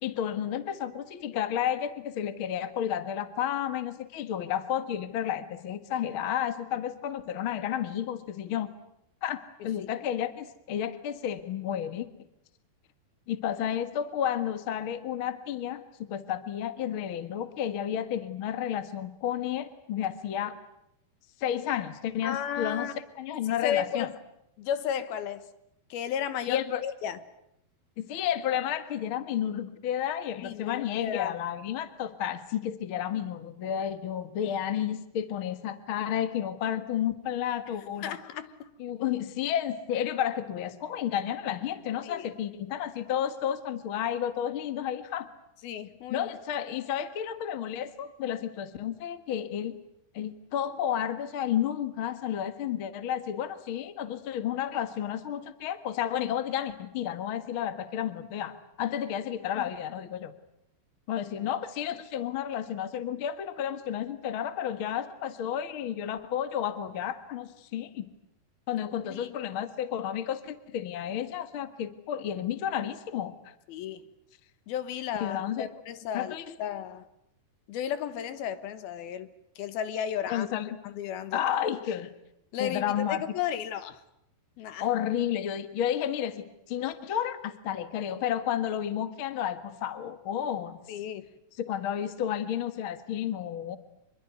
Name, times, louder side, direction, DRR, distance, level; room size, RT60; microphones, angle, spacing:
voice 1, 0.0-8.7 9.2-9.4 9.6-12.1 13.3-20.6 21.4-22.9 23.2-24.1 26.5-26.8 28.0-38.2 38.8-45.3 46.1-49.7 50.1-60.3 61.1-68.1 68.7-73.5 75.2-75.7 76.1-76.6 80.3-80.7 81.3-82.1 82.6-83.2 84.8-90.8 91.6-93.8, left 10 dB, 50° left, 11 dB, 1.6 m, -31 dB
voice 2, 22.2-22.9 23.6-24.2 24.6-25.5 25.9-27.2 30.4-31.4 38.0-38.7 42.0-42.3 45.6-46.3 59.5-59.7 69.1-69.4 73.7-74.1 74.7-77.1 77.7-80.5 80.8-81.4 82.5-84.0 84.6-84.9 90.9-91.3, left 9 dB, 75° left, 13 dB, 3.1 m, -34 dB
26.0 x 22.5 x 9.4 m, 0.79 s
omnidirectional pair, 4.5 m